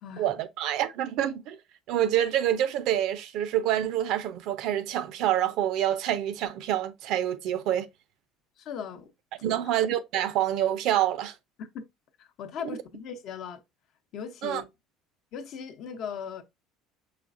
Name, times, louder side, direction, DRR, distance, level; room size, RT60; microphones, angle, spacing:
voice 1, 0.2-1.6 1.9-7.9 9.4-11.3 14.4-14.6, right 11 dB, 65° right, 0.5 m, -27 dB
voice 2, 8.6-9.1 9.6-9.7 11.6-11.8 12.2-13.6 14.1-14.7 15.3-16.4, left 7 dB, 60° left, 0.7 m, -38 dB
5.0 x 3.1 x 2.5 m
supercardioid pair, 110°, 0 cm